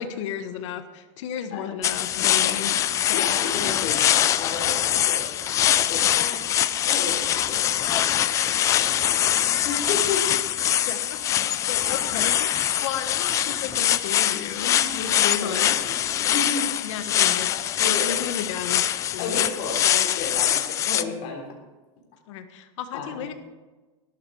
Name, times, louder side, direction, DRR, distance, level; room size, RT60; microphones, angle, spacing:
voice 1, 0.0-2.7 3.0-3.3 10.9-11.2 11.7-15.8 16.8-17.5 17.8-18.8 19.1-19.4 22.3-23.3, left 8 dB, 70° left, 8 dB, 1.4 m, -33 dB
sound 1, 1.8-21.0, left 11 dB, 20° left, 0.3 m, -23 dB
voice 2, 3.1-6.4 6.9-10.2 11.7-11.9 14.6-15.1 15.4-16.7 17.2-18.1 19.2-21.4 22.9-23.3, left 4 dB, 45° left, 0 dB, 3.6 m, -34 dB
13.0 x 11.5 x 4.8 m, 1.2 s
supercardioid pair, 165°, 16 cm